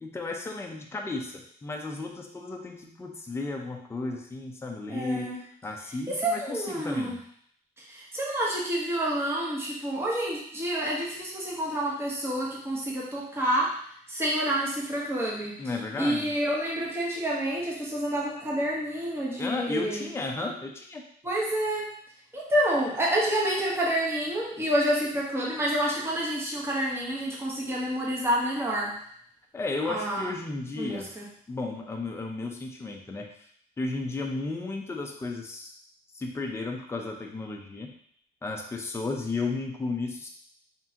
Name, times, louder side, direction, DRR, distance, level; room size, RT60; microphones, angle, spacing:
voice 1, 0.0-5.3 5.6-7.2 15.6-16.3 19.4-21.0 29.5-31.1 31.5-33.5 33.8-35.7 36.1-37.9 38.4-40.3, left 3 dB, 15° left, 1 dB, 0.6 m, -34 dB
voice 2, 4.9-5.4 6.1-7.2 7.8-13.8 14.1-15.6 16.0-20.0 21.2-21.9 22.3-28.9 29.9-30.3 30.8-31.3, right 1 dB, 15° right, -4 dB, 1.1 m, -28 dB
3.8 x 3.6 x 2.9 m, 0.64 s
cardioid pair, 110°, 17 cm